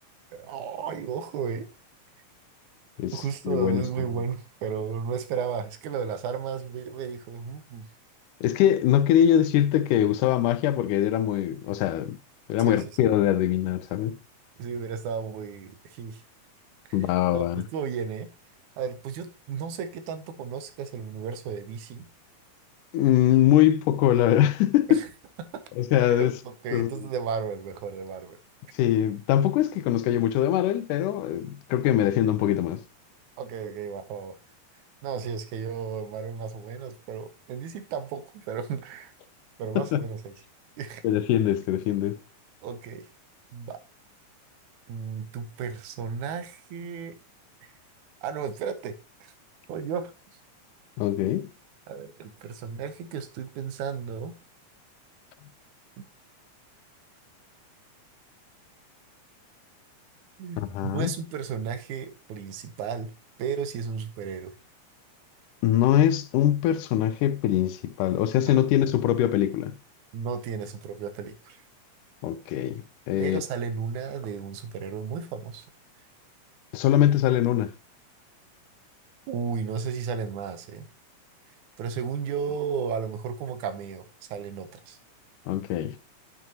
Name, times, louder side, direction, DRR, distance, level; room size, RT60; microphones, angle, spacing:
voice 1, 0.3-1.7 3.1-7.9 12.6-12.8 14.6-16.2 16.9-17.0 17.3-18.3 18.8-22.1 24.9-25.1 25.4-25.6 25.9-28.4 33.4-34.4 35.0-39.1 39.6-40.3 40.8-41.0 42.6-43.1 43.5-43.8 44.9-47.2 47.6-47.7 48.2-48.9 49.2-49.3 49.7-50.1 51.9-54.3 60.4-63.1 63.4-64.5 68.5-68.6 70.1-71.6 73.2-75.6 79.3-80.9 81.8-85.0, right 6 dB, 75° right, 2.2 m, -34 dB
voice 2, 3.0-3.8 8.4-12.2 12.5-14.2 16.9-17.6 22.9-25.0 25.8-26.3 26.7-26.9 28.7-32.8 39.8-40.0 41.0-42.2 51.0-51.5 60.6-61.1 65.6-69.7 72.2-73.4 76.7-77.7 85.5-86.0, left 11 dB, 90° left, 2.2 m, -23 dB
8.9 x 6.0 x 2.8 m
omnidirectional pair, 3.6 m